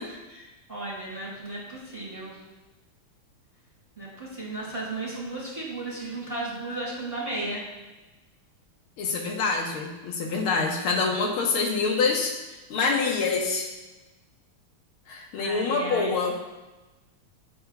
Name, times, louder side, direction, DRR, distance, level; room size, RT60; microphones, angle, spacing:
voice 1, 0.0-2.3 3.9-7.6 15.4-16.1, right 2 dB, 10° right, -7 dB, 2.9 m, -35 dB
voice 2, 9.0-12.4 12.7-13.7 15.1-16.3, left 4 dB, 85° left, 0 dB, 1.9 m, -26 dB
9.1 x 8.8 x 2.3 m, 1.1 s
omnidirectional pair, 2.3 m